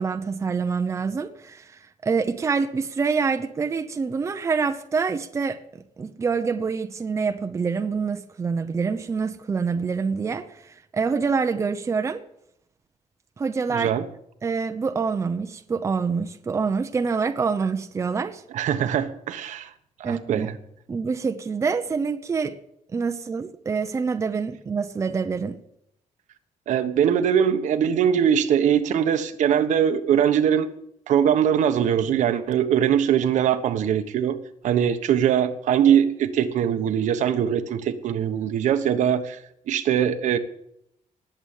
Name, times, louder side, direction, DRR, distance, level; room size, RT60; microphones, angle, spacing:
voice 1, 0.0-5.6 6.0-12.2 13.4-13.9 14.4-18.4 20.0-20.5 20.9-22.5 22.9-25.6, right 5 dB, 20° right, 7 dB, 0.8 m, -26 dB
voice 2, 13.7-14.0 18.5-19.7 20.0-20.5 26.7-30.7 31.1-34.4 34.6-39.4 39.7-40.4, right 9 dB, 70° right, 8 dB, 1.2 m, -21 dB
19.5 x 8.1 x 7.3 m, 0.75 s
cardioid pair, 180°, 13 cm